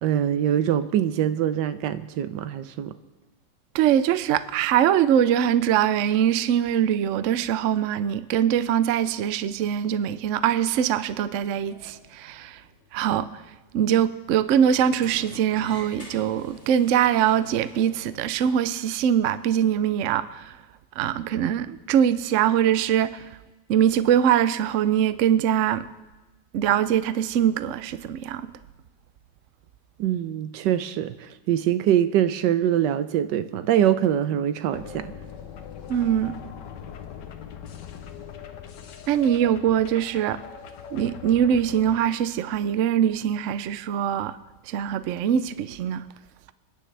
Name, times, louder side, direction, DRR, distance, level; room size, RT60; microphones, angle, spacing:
voice 1, 0.0-2.9 30.0-35.1, right 10 dB, 85° right, 1.3 m, -23 dB
voice 2, 3.7-12.6 12.9-13.4 13.7-20.6 21.0-23.3 23.7-25.9 26.5-28.5 35.9-36.4 39.1-40.4 40.9-44.4 44.7-46.0, right 9 dB, 65° right, 0.7 m, -22 dB
Sliding door, 11.3-18.3, left 1 dB, 50° left, 4.8 m, -47 dB
sound 1, 34.7-42.0, left 8 dB, 80° left, 1.5 m, -41 dB
28.5 x 10.0 x 3.3 m
omnidirectional pair, 1.9 m